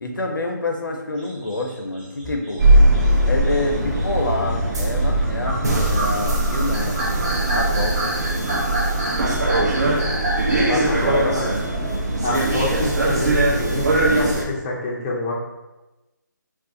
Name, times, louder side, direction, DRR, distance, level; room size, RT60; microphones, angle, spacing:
voice 1, 0.0-2.6 3.2-7.0 7.5-8.1 10.5-11.6, left 2 dB, 80° left, 3 dB, 0.6 m, -27 dB
sound 1, 1.2-10.9, right 1 dB, 25° right, 1.0 m, -29 dB
sound 2, 2.6-14.4, right 1 dB, 55° right, 0.7 m, -20 dB
voice 2, 10.8-11.5 12.2-15.3, left 2 dB, 15° left, -5 dB, 0.4 m, -27 dB
2.5 x 2.4 x 3.6 m, 1.1 s
figure-of-eight pair, 155°, 11 cm